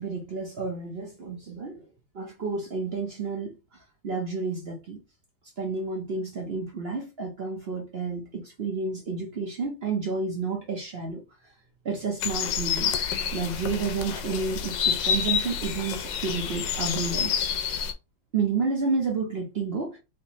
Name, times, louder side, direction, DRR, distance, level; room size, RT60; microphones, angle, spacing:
voice 1, 0.0-1.8 2.1-3.6 4.0-5.0 5.6-11.2 11.8-12.9 13.3-17.5 18.3-20.0, right 4 dB, 50° right, 0.8 m, -30 dB
sound 1, 12.2-17.9, left 7 dB, 90° left, 1.3 m, -28 dB
3.4 x 3.0 x 2.9 m
omnidirectional pair, 1.9 m